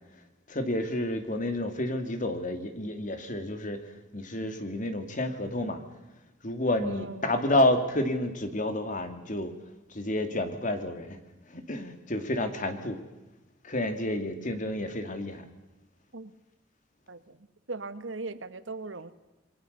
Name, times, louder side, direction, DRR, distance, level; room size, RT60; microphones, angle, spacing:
voice 1, 0.5-3.8 4.1-5.8 6.4-9.5 9.9-11.2 11.5-13.0 13.6-15.4, left 1 dB, 45° left, 8 dB, 2.5 m, -30 dB
voice 2, 6.8-7.3 16.1-16.3 17.1-17.4 17.7-19.1, right 3 dB, 85° right, 12 dB, 1.4 m, -38 dB
28.0 x 23.0 x 6.8 m, 1.0 s
head